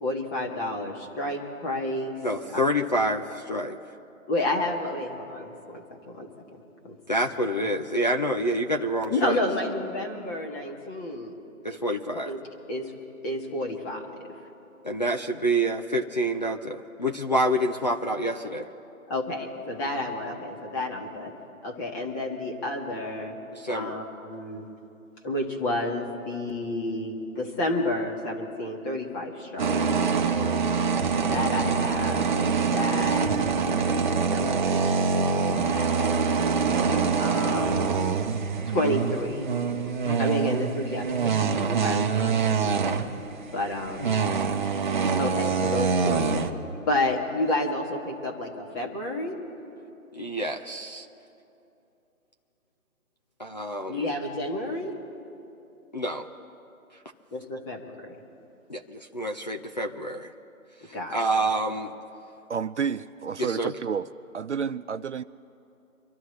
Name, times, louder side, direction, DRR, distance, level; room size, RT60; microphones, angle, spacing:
voice 1, 0.0-2.2 4.3-6.6 6.8-7.0 9.1-11.3 12.2-12.4 12.7-12.9 13.2-14.0 19.1-21.3 21.6-23.4 23.7-24.6 25.2-29.8 31.2-33.3 33.8-37.9 38.7-39.5 40.2-43.0 43.5-44.3 45.2-46.5 46.8-49.4 53.9-54.9 57.3-58.1 60.9-61.5, left 1 dB, 15° left, 1 dB, 1.1 m, -31 dB
voice 2, 2.2-3.8 7.1-9.4 11.6-12.3 14.8-18.7 23.5-24.0 30.2-30.6 39.5-40.2 50.1-51.1 53.4-54.1 55.9-56.3 58.7-60.3 60.8-61.9 63.4-63.7, right 1 dB, 30° left, 3 dB, 0.5 m, -28 dB
sound 1, 29.6-43.5 43.8-46.5, right 5 dB, 35° right, 0.9 m, -25 dB
voice 3, 62.5-64.1 64.3-65.2, right 6 dB, 55° right, 13 dB, 0.5 m, -30 dB
26.0 x 12.5 x 3.2 m, 2.8 s
figure-of-eight pair, 150°, 43 cm